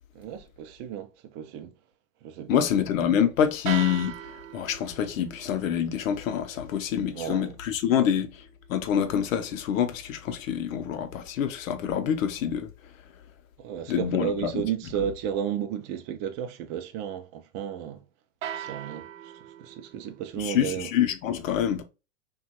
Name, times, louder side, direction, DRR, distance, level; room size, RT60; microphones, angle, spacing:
voice 1, 0.2-1.7 2.2-2.6 7.1-7.6 13.6-18.0 18.5-20.9, right 9 dB, 30° right, 0.3 m, -33 dB
voice 2, 2.5-8.4 8.7-12.7 13.9-14.6 20.4-21.8, left 9 dB, 80° left, 0.7 m, -26 dB
sound 1, 3.7-9.8 18.4-20.3, right 9 dB, 75° right, 0.6 m, -41 dB
2.9 x 2.3 x 2.7 m
supercardioid pair, 130°, 39 cm